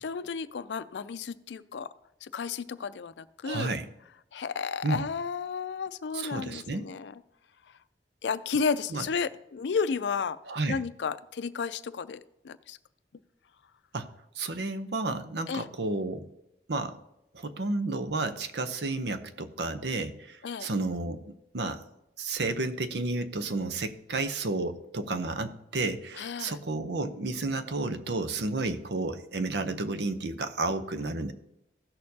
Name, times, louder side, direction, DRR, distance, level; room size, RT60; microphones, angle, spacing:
voice 1, 0.0-1.9 2.2-3.7 4.3-7.1 8.2-10.4 10.7-12.8 15.5-15.7 20.4-20.7 26.2-26.6, left 5 dB, 80° left, 14 dB, 0.4 m, -32 dB
voice 2, 3.4-3.9 4.8-5.0 6.1-6.9 8.9-9.1 10.5-10.8 13.9-16.3 16.7-17.0 17.3-21.2 21.5-21.9 22.2-31.3, right 3 dB, 70° right, 10 dB, 0.7 m, -31 dB
15.5 x 6.5 x 2.8 m, 0.86 s
head